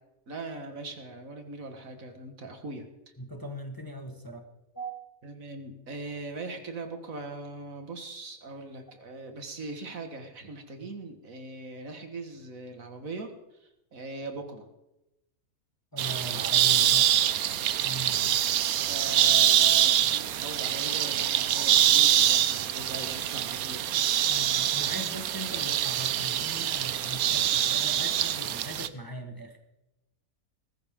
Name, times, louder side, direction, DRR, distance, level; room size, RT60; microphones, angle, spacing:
voice 1, 0.3-2.9 5.2-14.7 18.9-23.9, right 2 dB, 70° right, 5 dB, 2.1 m, -40 dB
voice 2, 3.2-4.5 4.7-5.0 10.8-10.9 15.9-17.2 17.8-18.2 24.3-29.6, equal, 15° left, 4 dB, 1.4 m, -40 dB
sound 1, 16.0-28.9, right 11 dB, 85° right, 1.2 m, -25 dB
20.5 x 14.0 x 3.7 m, 0.92 s
omnidirectional pair, 1.5 m